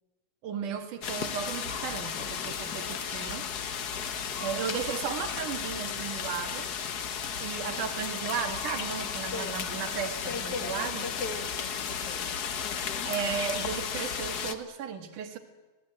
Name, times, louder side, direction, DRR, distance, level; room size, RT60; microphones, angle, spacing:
voice 1, 0.4-3.5 4.4-6.7 7.4-11.1 13.1-15.4, right 7 dB, 80° right, 7 dB, 3.3 m, -35 dB
sound 1, 1.0-14.5, left 7 dB, 85° left, 0.8 m, -34 dB
voice 2, 9.3-9.6 10.3-12.2 12.9-13.4, left 4 dB, 50° left, 6 dB, 2.5 m, -39 dB
26.5 x 19.0 x 9.0 m, 1.2 s
omnidirectional pair, 3.6 m